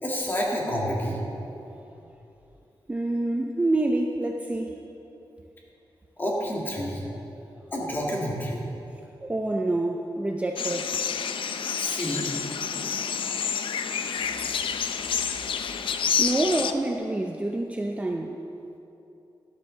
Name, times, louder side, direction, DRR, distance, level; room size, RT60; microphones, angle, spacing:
voice 1, 0.0-1.2 6.2-7.0 7.7-8.6 11.8-12.3, equal, 25° left, -2 dB, 1.9 m, -29 dB
voice 2, 2.9-4.8 7.0-7.2 9.2-11.0 15.9-18.5, right 2 dB, 15° right, 2 dB, 0.5 m, -27 dB
sound 1, 10.6-16.7, left 7 dB, 80° left, 0.5 m, -28 dB
12.5 x 12.5 x 3.9 m, 2.9 s
wide cardioid pair, 160°, 9 cm